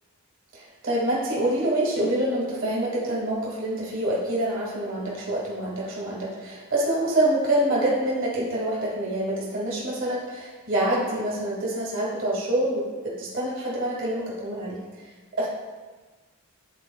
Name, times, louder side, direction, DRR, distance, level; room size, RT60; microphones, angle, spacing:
voice 1, 0.5-15.1 15.4-15.5, right 1 dB, 60° right, -5 dB, 1.5 m, -26 dB
10.5 x 4.1 x 2.2 m, 1.4 s
head